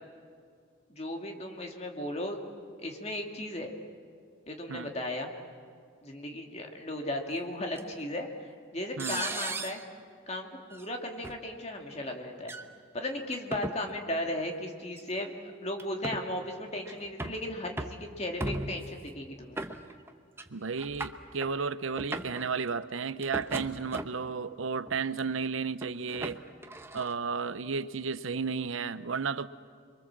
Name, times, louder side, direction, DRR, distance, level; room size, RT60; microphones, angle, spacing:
voice 1, 0.9-2.4 2.8-3.7 4.5-5.3 6.0-9.8 10.3-12.5 12.9-15.3 15.6-19.6, left 1 dB, 35° left, 2 dB, 2.4 m, -36 dB
sound 1, 7.8-7.9 9.0-9.8 10.7-10.9 11.2-11.4 12.4-12.6 13.3-13.8 15.0-15.1 15.8-16.2 16.8-17.4 17.8-18.0 18.4-18.9 19.6-20.1 20.4-20.5 20.8-21.5 21.9-22.4 23.2-24.3 24.9-25.2 25.8-27.1, right 2 dB, 10° right, 0.9 m, -37 dB
voice 2, 20.5-26.4 26.9-29.5, right 5 dB, 80° right, 14 dB, 0.7 m, -33 dB
28.0 x 23.5 x 7.5 m, 2.2 s
head